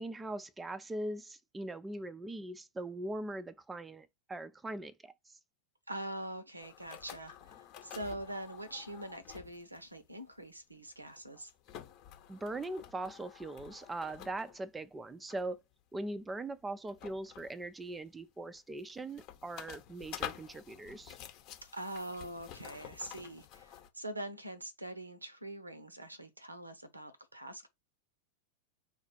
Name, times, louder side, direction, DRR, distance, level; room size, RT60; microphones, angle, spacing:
voice 1, 0.0-5.4 12.3-15.6 15.9-21.2, right 2 dB, 10° right, 0.4 m, -41 dB
voice 2, 5.9-11.5 21.6-27.7, right 1 dB, 80° right, 0.7 m, -44 dB
sound 1, 6.6-9.8 10.3-10.4 10.9-14.7 15.3-15.6 16.9-18.0 18.6-23.9, left 10 dB, 40° left, 0.8 m, -49 dB
4.2 x 2.4 x 4.0 m
figure-of-eight pair, 90°, 0 cm